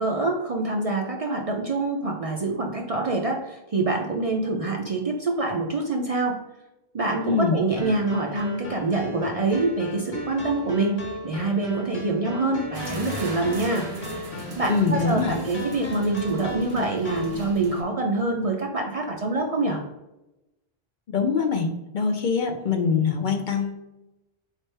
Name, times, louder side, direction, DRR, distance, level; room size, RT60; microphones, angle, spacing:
voice 1, 0.0-6.4 6.9-13.9 14.6-19.8, right 2 dB, 45° right, 1 dB, 0.5 m, -25 dB
voice 2, 7.2-7.6 14.7-15.4 21.1-21.7 21.9-23.8, left 5 dB, 60° left, 5 dB, 0.6 m, -23 dB
sound 1, 7.8-17.4, left 1 dB, 40° left, 1.2 m, -36 dB
sound 2, 12.7-17.8, equal, 75° right, 1.3 m, -37 dB
4.3 x 3.3 x 3.2 m, 0.96 s
omnidirectional pair, 1.0 m